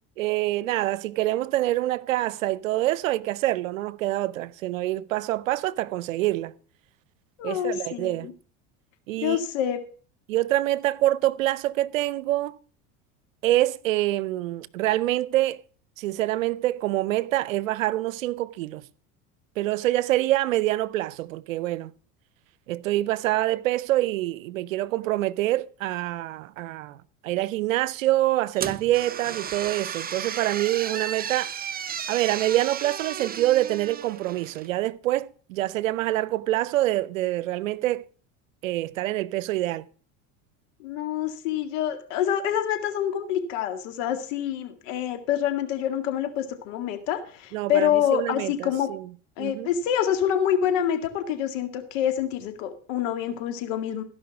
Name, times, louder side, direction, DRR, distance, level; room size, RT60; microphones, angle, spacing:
voice 1, 0.2-6.5 7.4-8.3 9.1-9.4 10.3-12.6 13.4-15.6 16.0-18.8 19.6-21.9 22.7-27.0 27.2-31.5 32.1-38.0 38.6-39.8 47.5-49.1 49.4-49.7, right 15 dB, 90° right, 0.7 m, -26 dB
voice 2, 7.4-8.3 9.2-9.8 40.8-48.9 49.4-54.0, left 10 dB, 75° left, 2.1 m, -26 dB
sound 1, 28.6-34.7, right 8 dB, 25° right, 0.7 m, -34 dB
15.5 x 5.6 x 7.0 m
hypercardioid pair, 90°, 38 cm